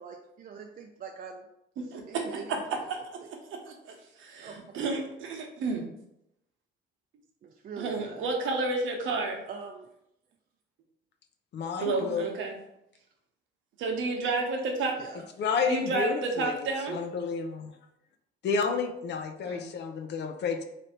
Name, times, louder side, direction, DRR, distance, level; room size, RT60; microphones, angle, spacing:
voice 1, 0.0-1.4 1.8-2.8 4.4-4.8 7.4-8.3 9.5-9.9 11.9-12.0 14.9-15.3, right 5 dB, 45° right, 2 dB, 0.4 m, -44 dB
voice 2, 1.8-2.6 2.9-3.4 3.7-5.8 7.8-9.4 11.8-12.6 13.8-15.0 15.7-17.0 19.5-19.7, right 3 dB, 80° right, 2 dB, 0.8 m, -31 dB
voice 3, 11.5-12.2 15.4-17.7 18.4-20.6, left 5 dB, 60° left, 5 dB, 0.6 m, -30 dB
3.3 x 2.6 x 4.2 m, 0.80 s
cardioid pair, 90°, 20 cm